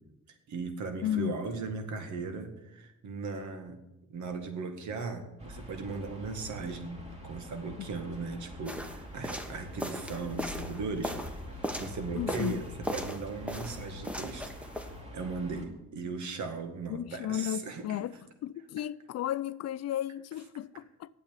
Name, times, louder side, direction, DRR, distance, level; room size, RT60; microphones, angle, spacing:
voice 1, 0.5-3.8 4.1-11.2 11.8-14.4 15.1-18.1, right 4 dB, 70° right, 1.9 m, -37 dB
voice 2, 1.0-1.3 12.1-12.6 16.9-18.2 18.4-21.1, left 12 dB, 55° left, 0.5 m, -34 dB
sound 1, 5.4-15.6, left 1 dB, 20° right, 2.9 m, -45 dB
sound 2, 8.6-12.0 12.3-13.2 13.5-14.9, equal, 5° right, 1.2 m, -37 dB
8.9 x 7.8 x 9.0 m
cardioid pair, 90°, 30 cm